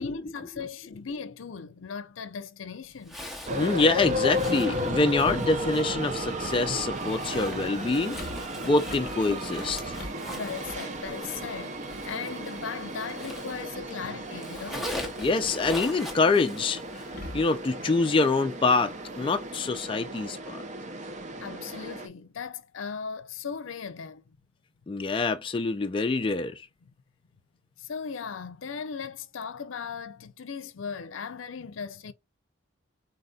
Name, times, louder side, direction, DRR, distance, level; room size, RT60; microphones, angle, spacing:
voice 1, 0.0-3.2 10.2-15.0 21.4-24.4 26.8-26.9 27.8-32.1, left 6 dB, 80° left, 0.5 m, -38 dB
Zipper (clothing), 3.0-13.9 14.2-17.2, left 1 dB, ahead, 0.8 m, -42 dB
sound 1, 3.5-22.1, equal, 35° right, 0.5 m, -34 dB
voice 2, 3.6-8.2 8.6-9.9 15.2-16.8 17.3-20.6 24.9-26.7, left 3 dB, 25° left, 0.3 m, -25 dB
sound 2, 4.7-20.3, left 1 dB, 50° left, 0.9 m, -48 dB
4.1 x 4.0 x 2.3 m
head